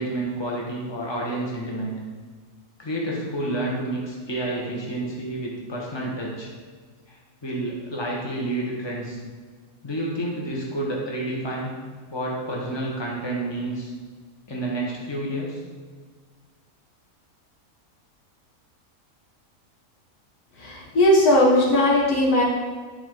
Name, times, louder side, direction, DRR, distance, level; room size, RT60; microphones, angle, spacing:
voice 1, 0.0-2.0 2.8-6.5 7.1-9.2 9.8-11.7 12.1-13.9 14.5-15.6, right 1 dB, 20° left, -3 dB, 1.5 m, -29 dB
voice 2, 20.6-22.4, left 1 dB, 80° left, -3 dB, 2.0 m, -18 dB
10.0 x 4.4 x 4.7 m, 1.5 s
omnidirectional pair, 1.6 m